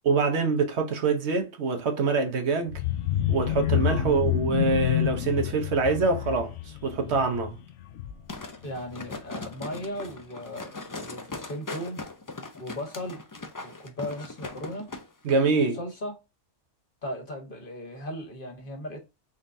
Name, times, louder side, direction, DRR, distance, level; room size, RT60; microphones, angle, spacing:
voice 1, 0.0-2.8 3.3-6.5 6.8-7.6 15.2-15.8, right 4 dB, 70° right, 1.1 m, -25 dB
sound 1, 2.7-8.5 8.8-9.1 9.4-9.5, left 12 dB, 85° left, 0.9 m, -28 dB
sound 2, 8.3-15.0 15.4-15.5, left 3 dB, 30° left, 0.3 m, -39 dB
voice 2, 8.6-12.0 12.6-13.2 13.6-14.9 15.6-16.2 17.0-19.0, equal, 50° left, 1.3 m, -37 dB
3.9 x 3.7 x 2.6 m
omnidirectional pair, 1.2 m